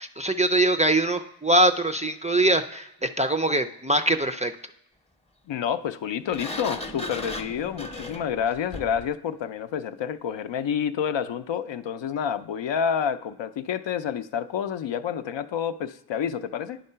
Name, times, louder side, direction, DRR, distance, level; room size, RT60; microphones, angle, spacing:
voice 1, 0.0-4.5, right 1 dB, 15° right, 0.4 m, -23 dB
voice 2, 5.5-16.8, left 8 dB, 65° left, 0.6 m, -29 dB
Sliding door, 6.3-9.1, left 2 dB, 15° left, 0.7 m, -36 dB
9.6 x 3.8 x 5.5 m
cardioid pair, 55°, 47 cm